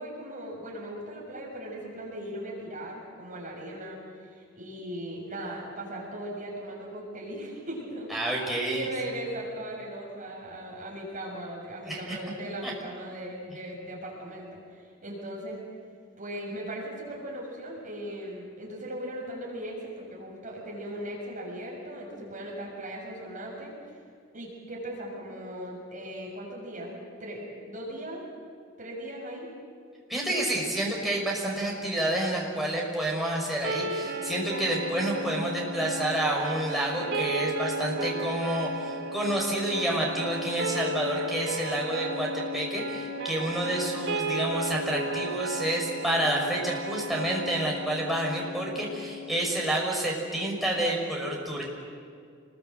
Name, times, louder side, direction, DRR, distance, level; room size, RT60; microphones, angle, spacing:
voice 1, 0.0-8.1 8.4-15.6 16.2-23.7 24.3-28.3 28.8-29.5, right 1 dB, 40° right, -2 dB, 6.7 m, -38 dB
voice 2, 8.1-8.9 11.8-12.2 12.6-12.7 30.1-51.7, right 1 dB, ahead, -3 dB, 5.6 m, -29 dB
sound 1, 33.6-49.7, right 1 dB, 80° right, 3.9 m, -34 dB
28.5 x 21.5 x 7.9 m, 2.2 s
head